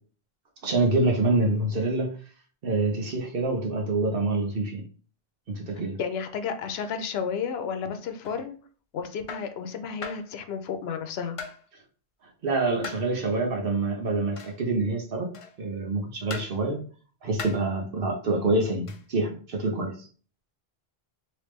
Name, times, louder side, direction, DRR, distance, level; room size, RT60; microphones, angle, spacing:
voice 1, 0.6-2.1 2.6-4.8 5.5-6.0 12.4-15.3 15.6-16.8 17.2-19.9, right 2 dB, 65° right, 1.0 m, -26 dB
voice 2, 6.0-8.6 8.9-11.4, left 6 dB, 80° left, 0.8 m, -32 dB
sound 1, 8.2-8.4 9.3-9.5 10.0-10.3 11.4-11.6 12.8-13.1 14.4-14.6 15.3-15.6 16.3-16.6 17.4-17.7 18.9-19.1, left 5 dB, 50° left, 0.4 m, -39 dB
3.4 x 3.0 x 3.1 m
omnidirectional pair, 1.0 m